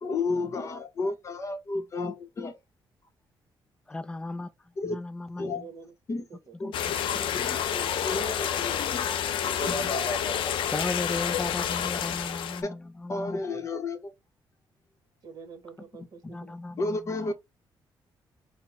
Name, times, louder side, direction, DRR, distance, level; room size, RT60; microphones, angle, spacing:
voice 1, 0.0-2.6 4.8-5.0 5.4-5.6 6.1-6.2 6.6-6.7 7.1-7.6 8.0-9.1 9.6-10.7 12.6-12.7 13.1-14.1 16.8-17.3, left 3 dB, 35° left, 0.8 m, -32 dB
voice 2, 3.9-5.7 6.9-7.0 10.7-13.4 16.2-17.3, left 2 dB, 10° left, 0.4 m, -36 dB
voice 3, 5.5-5.9 6.3-6.5 7.7-8.5 8.9-9.5 11.1-11.2 11.6-11.7 15.2-16.6, right 4 dB, 45° right, 1.1 m, -46 dB
sound 1, 6.7-12.6, left 9 dB, 75° left, 0.5 m, -29 dB
4.3 x 2.1 x 4.1 m
cardioid pair, 150°, 9 cm